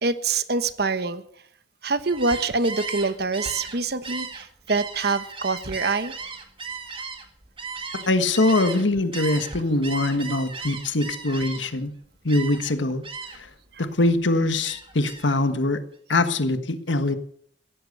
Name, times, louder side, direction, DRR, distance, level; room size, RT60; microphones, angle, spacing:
voice 1, 0.0-1.2 1.8-6.1, right 3 dB, 60° right, 12 dB, 1.2 m, -25 dB
Gull seagull, 2.0-8.8 9.1-11.8 12.3-12.7 13.0-13.5 13.9-15.4, right 4 dB, 30° right, 2.0 m, -36 dB
voice 2, 7.9-11.9 12.2-13.0 13.8-15.8 16.1-17.2, left 2 dB, 90° left, 10 dB, 1.5 m, -23 dB
16.5 x 13.5 x 6.7 m, 0.63 s
head